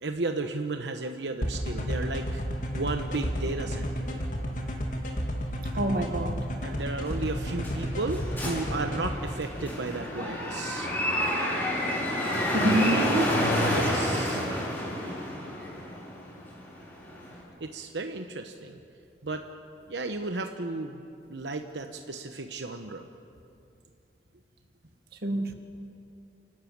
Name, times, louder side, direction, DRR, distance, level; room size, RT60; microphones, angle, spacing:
voice 1, 0.0-2.4 2.7-4.1 6.6-10.9 13.7-14.5 17.6-18.8 19.2-19.5 19.9-23.0, right 3 dB, 90° right, 6 dB, 1.0 m, -34 dB
sound 1, 1.4-9.1, equal, 45° left, 2.5 m, -31 dB
voice 2, 5.8-6.5 12.5-13.4 25.2-25.5, right 1 dB, 60° right, 6 dB, 1.7 m, -26 dB
sound 2, 7.1-17.4, left 1 dB, 15° left, 5.9 m, -29 dB
29.0 x 12.5 x 8.7 m, 2.5 s
head